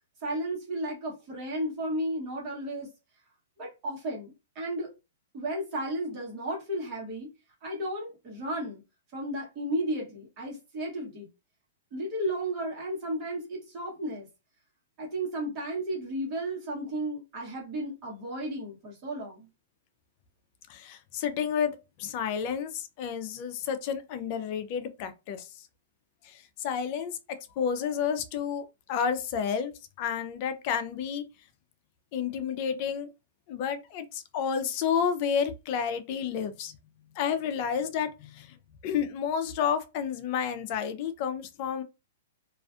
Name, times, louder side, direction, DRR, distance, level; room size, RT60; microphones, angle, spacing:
voice 1, 0.2-2.9 3.6-4.9 5.3-7.3 7.6-8.8 9.1-11.3 11.9-14.3 15.0-19.5, right 1 dB, 35° right, 1.1 m, -33 dB
voice 2, 20.7-25.5 26.2-29.7 30.0-31.2 32.1-33.1 33.5-36.8 37.2-38.6 38.8-41.8, left 7 dB, 40° left, 0.4 m, -30 dB
2.4 x 2.3 x 2.5 m
hypercardioid pair, 145°, 0 cm